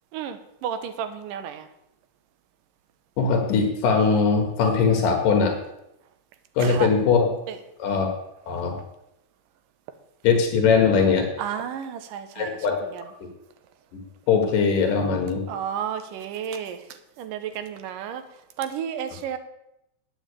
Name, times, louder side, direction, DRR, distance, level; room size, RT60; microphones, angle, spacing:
voice 1, 0.1-1.7 6.6-6.9 7.5-7.6 11.4-12.6 12.9-13.0 15.5-16.8 17.2-18.2 18.6-19.4, right 8 dB, 85° right, 9 dB, 2.6 m, -32 dB
voice 2, 3.2-5.5 6.6-7.3 7.8-8.1 8.5-8.8 10.2-11.3 12.4-12.8 13.9-14.0 14.3-15.4, left 5 dB, 85° left, 3 dB, 3.0 m, -20 dB
9.1 x 7.2 x 8.3 m, 0.83 s
omnidirectional pair, 3.7 m